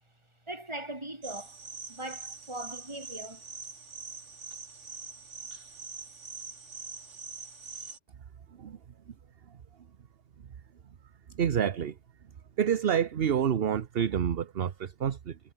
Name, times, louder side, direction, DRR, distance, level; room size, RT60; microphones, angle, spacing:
voice 1, 0.5-1.6 1.9-3.5, right 1 dB, 25° right, 3.5 m, -40 dB
sound 1, 1.2-8.0, right 4 dB, 85° right, 2.5 m, -44 dB
voice 2, 11.3-12.0 12.6-15.4, right 8 dB, 55° right, 1.1 m, -28 dB
omnidirectional pair, 1.2 m